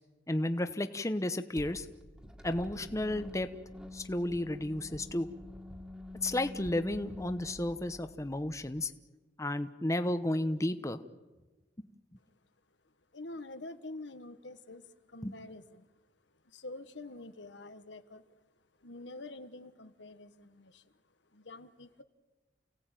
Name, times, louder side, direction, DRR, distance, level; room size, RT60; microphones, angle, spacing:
voice 1, 0.3-1.9 2.4-3.5 3.9-5.3 6.2-8.9 9.4-11.0 15.2-15.3, left 1 dB, 20° left, 9 dB, 0.9 m, -32 dB
sound 1, 1.6-8.9, left 1 dB, 5° right, 2.1 m, -47 dB
voice 2, 13.1-15.9 16.3-18.3 18.8-20.9 21.3-22.0, left 2 dB, 80° left, 10 dB, 1.4 m, -47 dB
29.5 x 17.5 x 9.1 m, 1.2 s
head